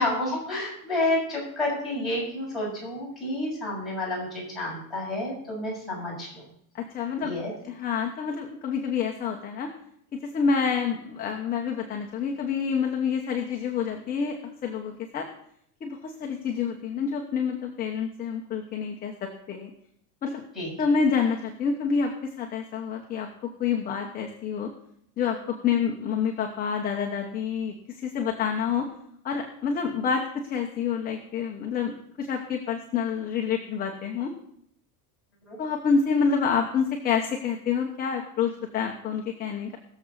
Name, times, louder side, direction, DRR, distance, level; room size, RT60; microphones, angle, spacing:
voice 1, 0.0-6.4 7.2-7.5 20.5-20.7 35.5-35.6, left 1 dB, ahead, -6 dB, 6.8 m, -30 dB
voice 2, 6.7-7.3 7.6-9.7 10.1-14.4 14.6-15.3 15.8-19.7 20.2-20.4 20.8-24.7 25.2-28.9 29.2-34.3 35.6-39.8, left 6 dB, 20° left, 1 dB, 1.0 m, -28 dB
21.5 x 7.3 x 4.0 m, 0.69 s
cardioid pair, 175°, 45 cm